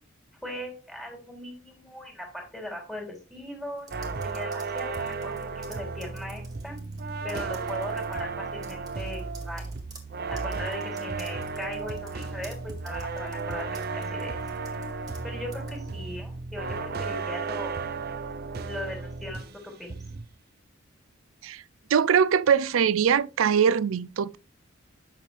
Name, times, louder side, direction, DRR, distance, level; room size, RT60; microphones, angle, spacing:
voice 1, 0.4-6.8 7.2-9.8 10.3-14.4 15.2-17.8 18.6-20.0, left 1 dB, ahead, 2.9 m, -39 dB
sound 1, 3.8-7.0 7.3-8.2 8.6-15.2 15.5-15.8, right 4 dB, 20° right, 2.0 m, -51 dB
sound 2, 3.9-19.6 19.9-20.3, right 4 dB, 50° right, 0.6 m, -34 dB
voice 2, 21.9-24.4, right 7 dB, 90° right, 0.4 m, -22 dB
8.8 x 6.3 x 3.3 m
head